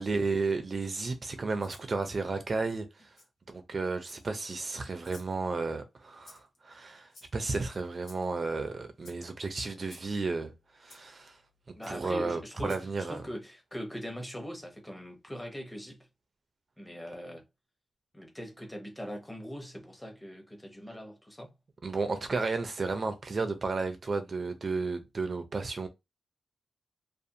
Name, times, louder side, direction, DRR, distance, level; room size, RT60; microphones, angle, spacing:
voice 1, 0.0-3.1 3.5-10.5 10.8-11.4 11.9-13.2 21.8-25.9, right 3 dB, 40° right, 0.4 m, -33 dB
Rattle (instrument), 1.6-1.9 3.1-3.3 4.0-4.5 5.0-5.3 6.2-6.6 7.1-7.5 8.0-8.3 9.0-9.2 9.9-10.1 10.9-11.0 11.8-11.9 12.6-12.9, left 2 dB, 60° left, 1.2 m, -54 dB
voice 2, 11.7-16.1 16.8-17.4 18.1-21.5, equal, 10° left, 0.8 m, -41 dB
2.5 x 2.3 x 2.7 m
wide cardioid pair, 120°, 0 cm